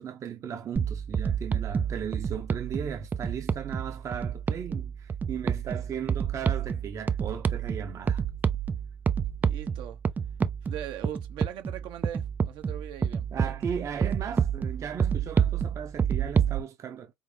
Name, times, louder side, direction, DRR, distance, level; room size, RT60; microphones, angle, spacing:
voice 1, 0.0-8.2 13.3-17.1, right 8 dB, 35° right, 0.8 m, -37 dB
sound 1, 0.8-16.6, right 7 dB, 20° right, 0.4 m, -29 dB
voice 2, 9.4-10.0 10.6-13.3, right 11 dB, 65° right, 0.9 m, -40 dB
5.3 x 2.1 x 3.2 m
cardioid pair, 130°, 9 cm